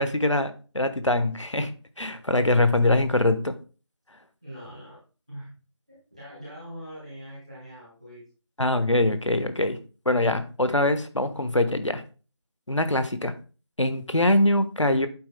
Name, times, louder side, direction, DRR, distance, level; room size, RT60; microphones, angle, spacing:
voice 1, 0.0-1.7 2.0-3.5 8.6-9.8 10.0-12.0 12.7-13.3 13.8-15.1, left 1 dB, 80° left, 10 dB, 1.1 m, -23 dB
voice 2, 4.4-5.0 5.3-5.5 5.9-8.2, equal, 15° right, -12 dB, 2.6 m, -42 dB
8.7 x 7.2 x 2.2 m, 0.36 s
figure-of-eight pair, 175°, 15 cm